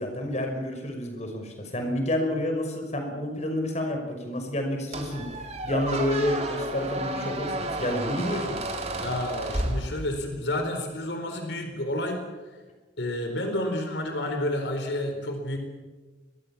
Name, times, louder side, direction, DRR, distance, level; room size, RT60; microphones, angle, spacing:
voice 1, 0.0-5.3 5.6-8.6, left 1 dB, 40° left, 4 dB, 5.7 m, -29 dB
Squeak, 4.9-10.4, right 2 dB, 40° right, 3.2 m, -32 dB
voice 2, 8.9-12.6 13.0-15.6, left 1 dB, 80° left, 5 dB, 4.3 m, -30 dB
26.0 x 21.5 x 7.3 m, 1.3 s
head